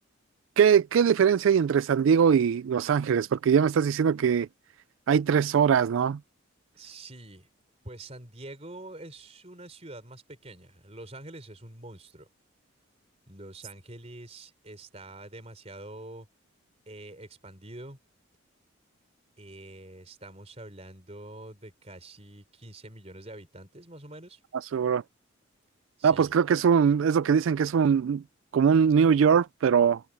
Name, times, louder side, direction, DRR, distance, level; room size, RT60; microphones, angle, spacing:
voice 1, 0.6-4.5 5.1-6.2 24.7-25.0 26.0-28.2 28.5-30.0, right 7 dB, 75° right, 0.3 m, -22 dB
voice 2, 6.7-7.5 7.8-12.3 13.3-16.3 16.9-18.0 19.4-24.4 26.0-26.3, right 2 dB, 30° right, 3.8 m, -45 dB
head